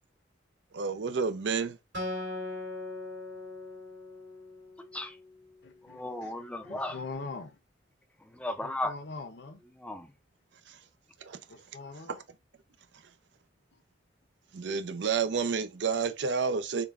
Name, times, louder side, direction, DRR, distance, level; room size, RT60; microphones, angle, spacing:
voice 1, 0.7-1.8 10.7-10.8 11.2-11.4 14.5-16.9, right 5 dB, 70° right, 0.5 m, -30 dB
Acoustic guitar, 1.9-5.4, left 2 dB, 85° right, 2.1 m, -39 dB
voice 2, 4.8-5.2 5.8-7.0 8.2-8.9 9.8-10.1, left 1 dB, 5° left, 0.5 m, -36 dB
voice 3, 5.6-7.6 8.6-9.6 10.7-10.8 11.5-12.2 13.7-13.8, left 3 dB, 65° left, 0.8 m, -43 dB
3.8 x 2.4 x 3.4 m
head